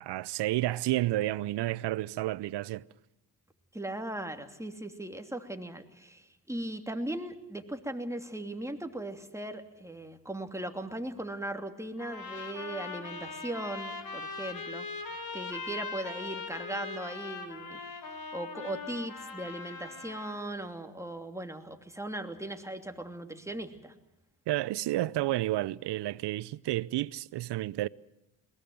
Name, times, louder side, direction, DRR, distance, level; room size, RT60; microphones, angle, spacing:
voice 1, 0.0-2.8 24.5-27.9, right 16 dB, 70° right, 0.7 m, -31 dB
voice 2, 3.7-14.9 15.3-17.8 18.3-23.9, right 1 dB, 5° right, 2.8 m, -38 dB
sound 1, 12.0-20.4, left 4 dB, 55° left, 3.4 m, -40 dB
22.0 x 19.0 x 7.8 m
hypercardioid pair, 45°, 43 cm